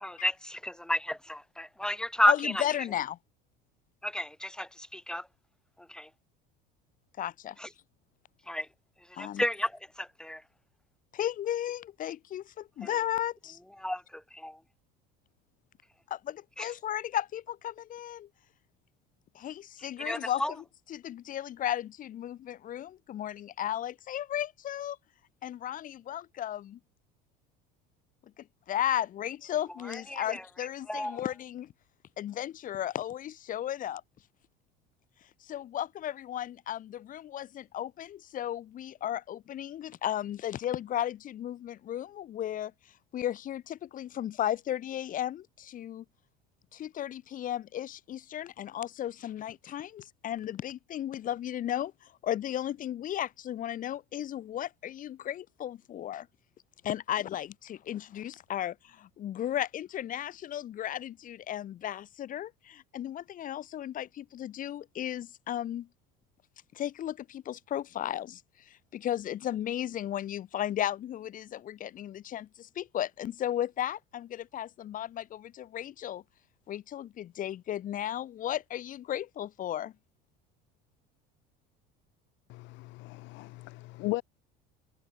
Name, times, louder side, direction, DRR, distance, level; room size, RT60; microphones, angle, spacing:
voice 1, 0.0-2.6 4.0-5.2 5.9-6.1 8.5-8.7 9.2-9.7 10.0-10.4 13.8-14.0 14.3-14.6 16.6-16.7 20.0-20.5 30.1-30.4 30.9-31.2, left 1 dB, 5° left, 1.6 m, -31 dB
voice 2, 2.3-3.2 7.2-7.6 9.2-9.4 11.1-13.6 16.1-18.3 19.3-25.0 25.4-26.8 28.4-31.7 32.2-34.0 35.4-42.7 43.1-46.0 46.7-56.3 56.8-65.9 66.7-76.2 76.7-79.9, left 11 dB, 40° left, 2.0 m, -35 dB
voice 3, 82.5-84.2, left 21 dB, 65° left, 2.8 m, -37 dB
cardioid pair, 130°, 21 cm